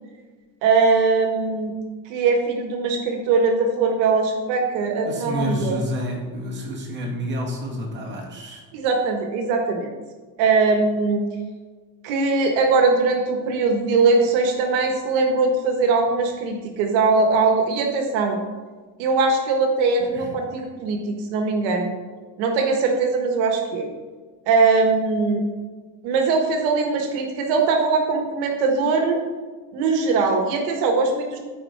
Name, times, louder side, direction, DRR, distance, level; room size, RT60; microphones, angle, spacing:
voice 1, 0.6-1.7 2.1-5.7 8.7-9.9 10.4-11.3 12.0-18.4 19.0-21.9 22.4-23.9 24.5-25.4 26.0-29.2 29.7-31.4, right 4 dB, 75° right, 3 dB, 1.5 m, -21 dB
voice 2, 5.1-8.6 20.0-20.3, equal, 20° right, -3 dB, 2.2 m, -29 dB
13.5 x 4.7 x 4.7 m, 1.4 s
cardioid pair, 160°, 48 cm